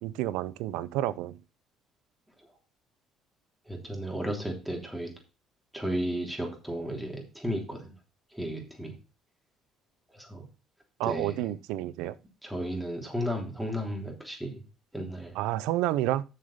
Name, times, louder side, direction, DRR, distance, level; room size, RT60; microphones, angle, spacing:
voice 1, 0.0-1.4 11.0-12.1 15.3-16.2, right 14 dB, 85° right, 0.6 m, -30 dB
voice 2, 3.7-5.1 5.7-7.9 8.3-8.9 10.1-10.4 11.0-11.5 12.4-14.6 14.9-15.3, equal, 5° right, 3.2 m, -34 dB
7.6 x 6.5 x 5.6 m
cardioid pair, 95°, 0 cm